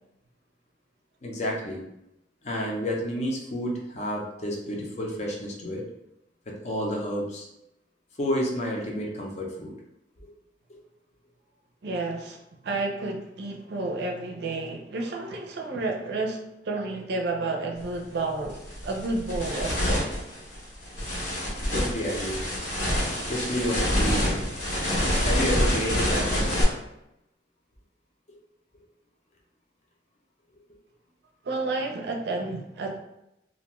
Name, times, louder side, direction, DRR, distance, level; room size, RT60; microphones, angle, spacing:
voice 1, 1.2-1.8 2.4-5.8 6.6-7.5 8.2-9.7 10.2-10.3 21.7-22.4 23.3-24.5 25.2-26.6, equal, 40° left, -1 dB, 0.5 m, -30 dB
voice 2, 11.8-12.4 12.6-20.2 31.4-33.0, right 3 dB, 65° right, 2 dB, 0.5 m, -31 dB
sound 1, 17.8-17.9 18.4-26.6, equal, 75° left, 0.9 m, -27 dB
2.5 x 2.2 x 2.9 m, 0.86 s
head